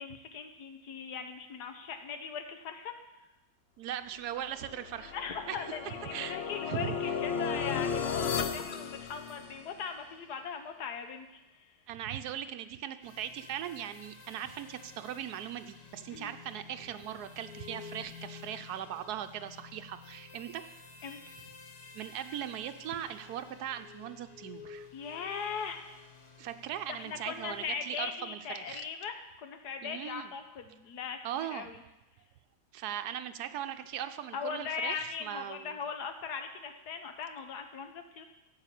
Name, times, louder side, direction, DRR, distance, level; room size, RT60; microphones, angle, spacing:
voice 1, 0.0-2.9 5.0-11.7 16.1-16.3 21.0-21.2 24.9-25.8 26.9-31.8 34.3-38.2, left 6 dB, 85° left, 6 dB, 1.6 m, -39 dB
voice 2, 3.8-5.1 5.5-6.4 6.7-6.9 11.9-20.6 21.9-24.9 26.4-28.8 29.8-30.3 31.2-31.7 32.7-35.8, right 10 dB, 80° right, 9 dB, 1.2 m, -39 dB
sound 1, 4.6-9.8, left 6 dB, 50° left, 0.8 m, -35 dB
sound 2, 13.0-27.7, left 6 dB, 70° left, 1.7 m, -52 dB
9.7 x 7.8 x 7.5 m, 1.0 s
omnidirectional pair, 1.7 m